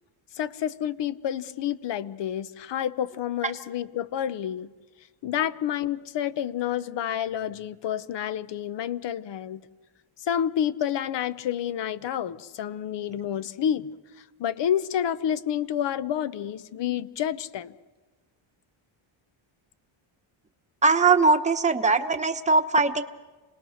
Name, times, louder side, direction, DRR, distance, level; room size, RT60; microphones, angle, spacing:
voice 1, 0.3-4.7 5.2-9.6 10.3-13.9 14.4-17.7, left 10 dB, 60° left, 15 dB, 0.9 m, -29 dB
voice 2, 20.8-23.0, right 4 dB, 15° right, 6 dB, 1.0 m, -21 dB
27.0 x 19.5 x 6.5 m, 1.2 s
cardioid pair, 125°, 49 cm